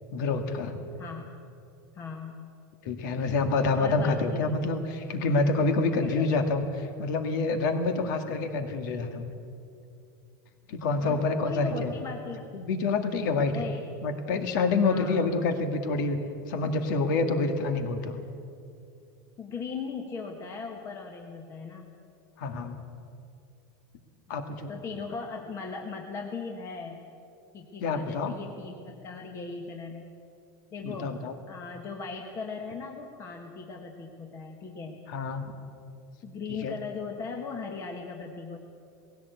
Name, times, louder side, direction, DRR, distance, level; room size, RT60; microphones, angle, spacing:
voice 1, 0.1-0.8 2.8-9.2 10.7-11.9 12.5-13.6 14.0-16.2 16.5-18.2 22.4-22.8 24.3-24.7 27.8-28.3 30.8-31.3 35.1-35.4 36.6-36.7, left 3 dB, 65° left, 6 dB, 2.1 m, -27 dB
voice 2, 1.9-2.5 3.7-4.5 6.0-6.4 11.0-12.5 13.5-13.8 14.8-15.2 19.4-21.9 24.4-27.0 27.5-30.1 30.7-31.2 31.5-35.0 36.2-38.6, left 4 dB, 25° left, 2 dB, 1.5 m, -38 dB
19.0 x 16.0 x 8.4 m, 2.5 s
supercardioid pair, 155°, 11 cm